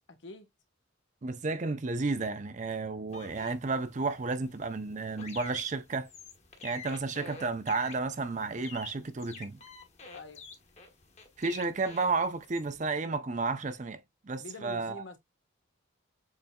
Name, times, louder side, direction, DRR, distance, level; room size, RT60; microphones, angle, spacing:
voice 1, 0.1-0.5 10.1-10.5 14.4-15.2, left 2 dB, 65° left, 1.2 m, -45 dB
voice 2, 1.2-6.1 6.6-9.6 11.4-14.0 14.3-15.0, right 3 dB, 35° right, 0.5 m, -32 dB
sound 1, 3.1-13.0, left 4 dB, 35° left, 1.1 m, -49 dB
6.9 x 3.4 x 2.2 m
head